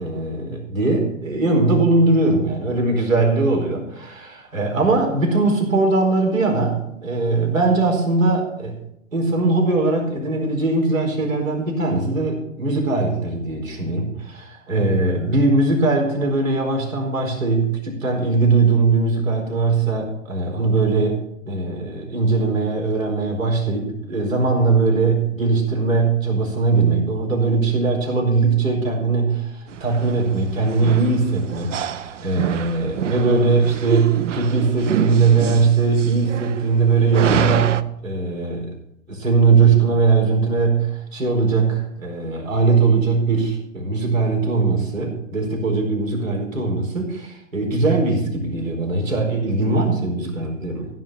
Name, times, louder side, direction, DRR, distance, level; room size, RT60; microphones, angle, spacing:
voice 1, 0.0-8.7 9.1-21.2 21.5-38.7 39.1-50.9, right 3 dB, 85° right, 1 dB, 4.6 m, -20 dB
sound 1, 29.7-37.8, right 9 dB, 65° right, 0.8 m, -27 dB
15.0 x 5.8 x 7.4 m, 0.79 s
hypercardioid pair, 120°, 39 cm